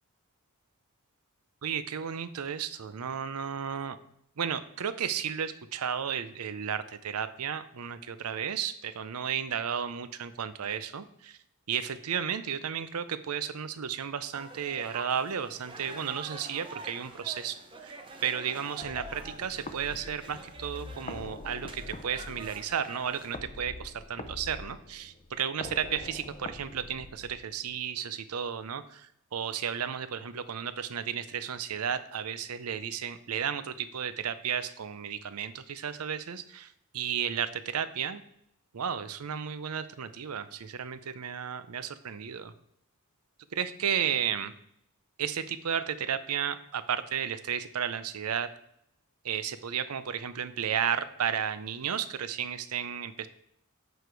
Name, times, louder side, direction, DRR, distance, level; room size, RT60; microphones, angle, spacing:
voice 1, 1.6-4.0 4.4-11.4 11.7-18.0 18.2-38.2 38.7-42.5 43.5-44.5 45.2-48.5 49.2-53.3, right 8 dB, 90° right, 13 dB, 0.6 m, -33 dB
sound 1, 14.3-23.4, right 2 dB, 25° right, 0.9 m, -46 dB
sound 2, 18.8-27.8, left 2 dB, 30° left, 0.5 m, -44 dB
8.1 x 4.9 x 4.6 m, 0.73 s
head